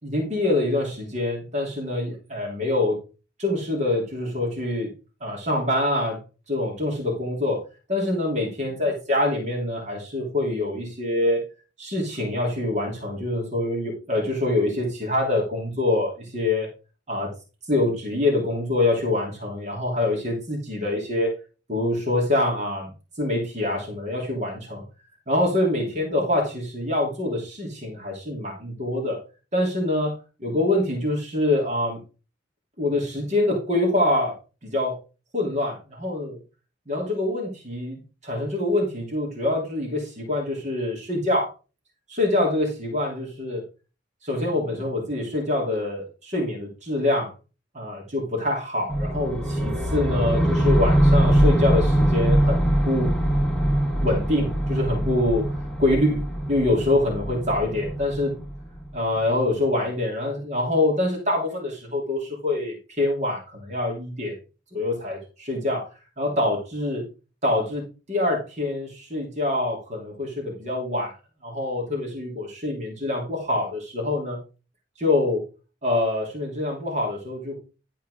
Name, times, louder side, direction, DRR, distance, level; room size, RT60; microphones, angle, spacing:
voice 1, 0.0-3.0 3.4-4.9 5.2-6.2 6.5-7.6 7.9-11.4 11.8-16.7 17.1-17.3 17.7-21.3 21.7-22.9 23.2-24.8 25.3-29.2 29.5-30.1 30.4-32.0 32.8-34.3 34.6-34.9 35.3-36.4 36.9-41.5 42.1-43.6 44.2-47.3 47.7-52.6 52.9-53.1 54.0-55.4 55.8-56.2 56.5-58.3 58.9-64.3 64.7-65.9 66.2-67.0 67.4-71.2 71.4-74.4 75.0-75.4 75.8-77.6, left 1 dB, 40° right, -2 dB, 3.0 m, -25 dB
sound 1, 48.9-59.0, right 1 dB, ahead, 2.0 m, -22 dB
12.0 x 4.6 x 4.9 m, 0.33 s
head